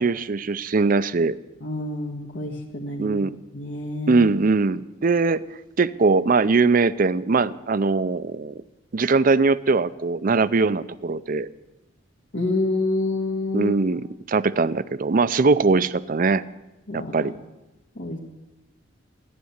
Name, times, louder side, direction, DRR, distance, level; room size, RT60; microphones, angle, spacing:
voice 1, 0.0-1.4 3.0-3.3 4.1-5.4 5.8-8.5 8.9-11.5 13.5-16.4 16.9-17.3, right 4 dB, 45° right, 16 dB, 0.5 m, -21 dB
voice 2, 1.6-3.2 3.5-4.3 12.3-14.0 16.9-17.3 17.9-18.2, left 2 dB, 75° left, -1 dB, 1.5 m, -28 dB
14.5 x 10.5 x 8.0 m, 1.0 s
head